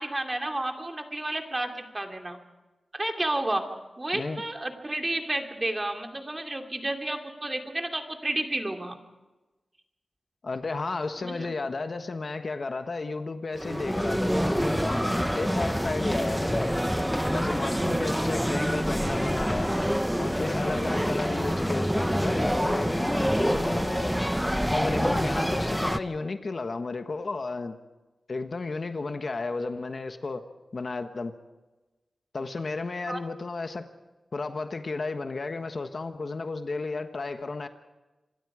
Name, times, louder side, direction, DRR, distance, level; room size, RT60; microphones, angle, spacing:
voice 1, 0.0-2.4 2.9-3.6 4.0-9.0 11.2-11.5 17.6-18.1 20.7-21.0 33.1-33.2, right 1 dB, 25° right, 2.6 m, -31 dB
voice 2, 4.1-4.4 10.4-16.8 17.3-19.7 20.2-24.2 24.7-27.8 28.3-30.5 30.7-31.3 32.3-33.8 34.3-37.7, left 3 dB, 50° left, 1.3 m, -33 dB
sound 1, 13.6-26.0, equal, ahead, 0.8 m, -26 dB
26.5 x 22.0 x 5.0 m
wide cardioid pair, 100°, 0 cm